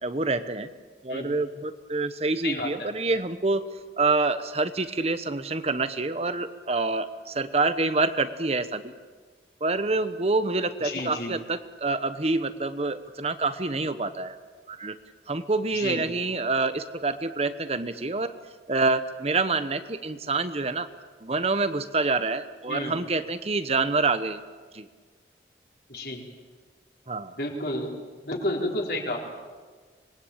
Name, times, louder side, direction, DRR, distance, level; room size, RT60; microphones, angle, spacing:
voice 1, 0.0-0.7 1.0-3.6 4.0-8.9 9.6-14.4 14.7-15.0 15.3-18.3 18.7-20.9 21.2-24.4 24.7-24.9 27.1-27.3, right 3 dB, 35° right, 11 dB, 1.0 m, -27 dB
voice 2, 2.4-2.9 10.8-11.3 15.7-16.0 22.7-22.9 25.9-26.2 27.4-27.9 28.2-29.3, left 1 dB, 60° left, 0 dB, 4.6 m, -31 dB
26.0 x 21.0 x 8.8 m, 1.5 s
head